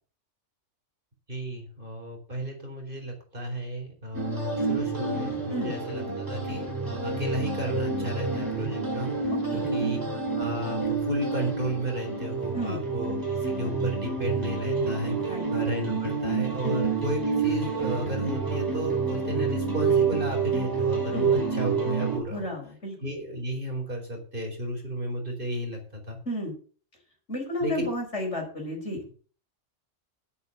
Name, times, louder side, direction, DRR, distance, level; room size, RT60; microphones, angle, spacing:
voice 1, 1.3-10.0 10.3-13.1 13.5-22.5 23.0-26.2 27.6-27.9, right 1 dB, 45° right, 1 dB, 4.5 m, -33 dB
sound 1, 4.1-22.2, right 4 dB, 15° right, 4.1 m, -28 dB
voice 2, 9.3-9.7 12.5-12.8 15.3-15.5 16.6-16.8 21.1-21.3 22.2-22.9 26.2-26.5 27.3-29.0, equal, 65° left, 1 dB, 5.1 m, -32 dB
10.5 x 9.4 x 6.7 m, 0.41 s
omnidirectional pair, 1.3 m